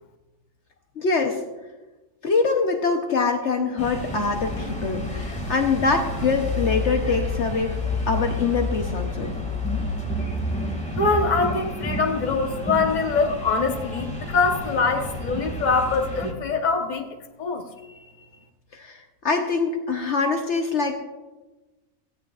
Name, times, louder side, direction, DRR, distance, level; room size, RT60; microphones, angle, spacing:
voice 1, 1.0-1.4 2.2-7.7 8.1-9.3 18.7-21.0, left 4 dB, 60° left, 4 dB, 1.1 m, -24 dB
sound 1, 3.8-16.3, left 2 dB, 5° left, 1.9 m, -30 dB
voice 2, 11.0-17.1 17.4-17.6, left 4 dB, 35° left, 4 dB, 1.2 m, -23 dB
17.5 x 15.0 x 2.4 m, 1.1 s
omnidirectional pair, 1.4 m